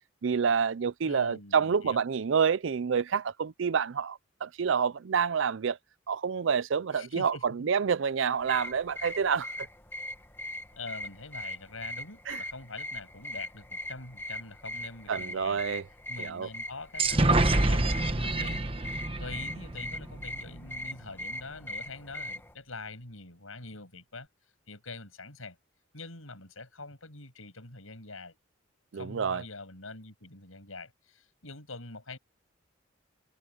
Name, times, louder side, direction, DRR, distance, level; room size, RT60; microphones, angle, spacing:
voice 1, 0.2-5.8 6.1-9.5 12.3-12.4 15.1-15.8 16.2-16.5 28.9-29.4, right 6 dB, 65° right, 0.5 m, -28 dB
voice 2, 1.0-2.0 6.9-7.7 10.8-15.6 16.1-18.7 19.2-24.3 24.7-25.6 25.9-28.4 28.9-32.2, left 3 dB, 85° left, 7.2 m, -44 dB
sound 1, 8.4-22.5, left 1 dB, 10° left, 1.7 m, -40 dB
sound 2, 17.0-20.7, right 2 dB, 25° right, 1.1 m, -27 dB
head